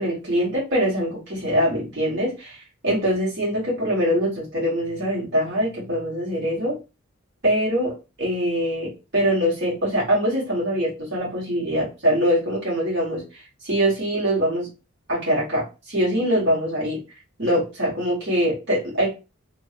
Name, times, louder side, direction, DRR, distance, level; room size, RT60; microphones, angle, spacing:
voice 1, 0.0-2.6 2.8-6.8 7.4-13.2 13.6-14.7 15.1-17.0 17.4-19.1, equal, 50° right, -4 dB, 1.6 m, -23 dB
2.9 x 2.7 x 2.9 m, 0.29 s
head